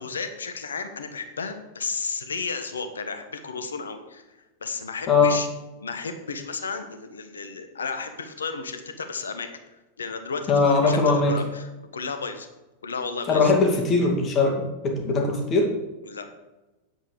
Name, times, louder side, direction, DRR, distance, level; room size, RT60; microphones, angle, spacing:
voice 1, 0.0-4.2 4.6-5.5 5.8-9.5 10.0-12.5 12.8-13.5 16.0-16.3, left 4 dB, 70° left, 8 dB, 1.2 m, -33 dB
voice 2, 10.5-11.3 13.3-15.7, left 4 dB, 30° left, 1 dB, 2.4 m, -20 dB
9.5 x 8.0 x 5.0 m, 1.1 s
figure-of-eight pair, 90°, 0 cm